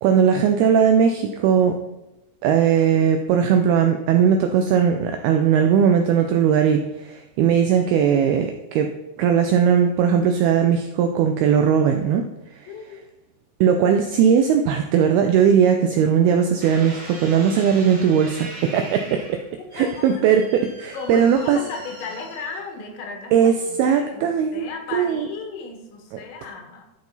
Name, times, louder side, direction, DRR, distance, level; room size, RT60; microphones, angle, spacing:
voice 1, 0.0-1.8 2.4-8.9 9.2-12.3 13.6-19.2 19.7-21.6 23.3-25.3, right 7 dB, 85° right, 5 dB, 2.2 m, -18 dB
voice 2, 12.7-13.0 19.8-20.2 20.9-23.5 23.9-26.9, left 4 dB, 90° left, 3 dB, 3.7 m, -35 dB
sound 1, 16.6-23.0 23.7-24.1, right 1 dB, 60° right, 0.9 m, -41 dB
13.0 x 5.0 x 3.9 m, 0.97 s
omnidirectional pair, 5.1 m